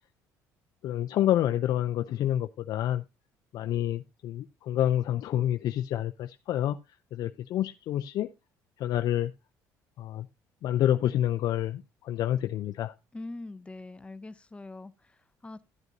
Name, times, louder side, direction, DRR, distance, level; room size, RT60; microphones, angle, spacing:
voice 1, 0.8-3.0 3.5-6.8 7.1-8.3 8.8-9.3 10.0-10.3 10.6-12.9, left 12 dB, 60° left, 0.4 m, -28 dB
voice 2, 13.1-15.6, left 2 dB, 15° left, 0.6 m, -43 dB
13.5 x 8.0 x 2.6 m
supercardioid pair, 90°, 7 cm